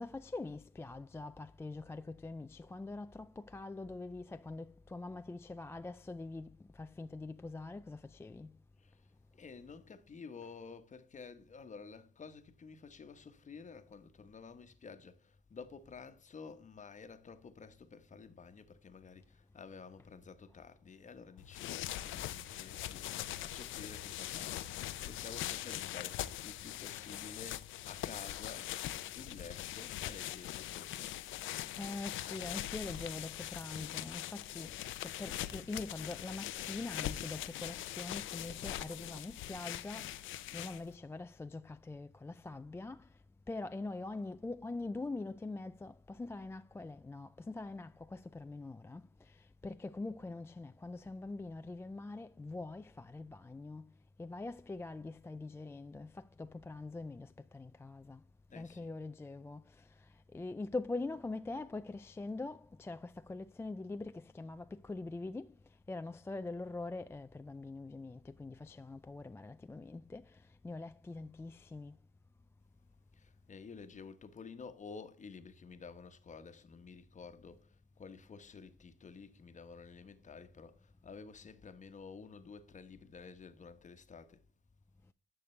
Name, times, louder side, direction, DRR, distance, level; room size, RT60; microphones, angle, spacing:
voice 1, 0.0-8.6 31.8-43.1 43.5-53.9 54.2-58.2 58.5-65.5 65.9-72.0, left 3 dB, 15° left, 0.3 m, -44 dB
voice 2, 9.3-31.1 58.5-58.9 73.1-84.4, left 5 dB, 40° left, 1.1 m, -51 dB
sound 1, 21.4-41.0, left 13 dB, 80° left, 0.6 m, -42 dB
11.0 x 6.7 x 3.2 m
cardioid pair, 90°, 20 cm